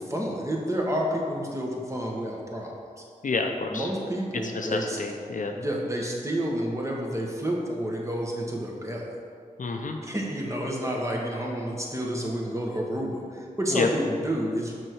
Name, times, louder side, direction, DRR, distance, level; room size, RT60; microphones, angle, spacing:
voice 1, 0.0-2.7 3.7-5.0 5.5-9.1 10.0-14.7, equal, 20° right, -2 dB, 1.4 m, -29 dB
voice 2, 3.2-3.9 4.4-5.5 9.6-10.0 13.7-13.9, left 3 dB, 60° left, 3 dB, 0.6 m, -29 dB
6.1 x 4.7 x 4.7 m, 2.3 s
cardioid pair, 40°, 15 cm